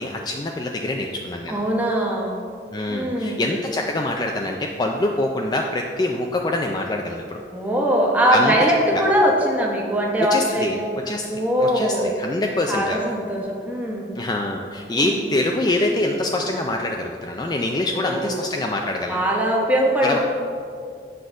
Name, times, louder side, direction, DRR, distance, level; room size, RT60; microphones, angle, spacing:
voice 1, 0.0-1.6 2.7-7.4 8.3-8.5 8.9-9.0 10.2-10.8 11.1-13.0 14.1-19.3 20.0-20.2, left 2 dB, 25° left, 1 dB, 0.3 m, -25 dB
voice 2, 1.5-2.4 2.9-3.4 7.5-10.9 11.3-12.1 12.7-14.1 14.9-15.2 17.7-18.4 19.1-20.2, equal, 10° right, -2 dB, 1.0 m, -21 dB
7.9 x 3.9 x 6.2 m, 2.3 s
head